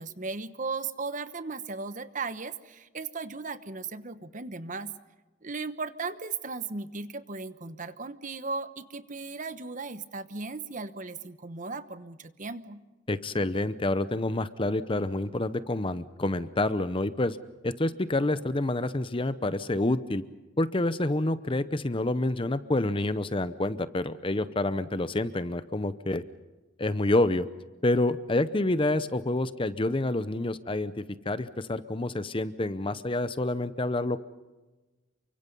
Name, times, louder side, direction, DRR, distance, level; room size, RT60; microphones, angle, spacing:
voice 1, 0.0-4.9 5.4-12.8, right 4 dB, 40° right, 12 dB, 1.1 m, -36 dB
voice 2, 13.1-17.4 17.6-20.2 20.6-26.2 26.8-27.5 27.8-30.9 31.3-34.2, left 2 dB, 25° left, 14 dB, 0.7 m, -28 dB
29.0 x 24.5 x 5.4 m, 1.2 s
head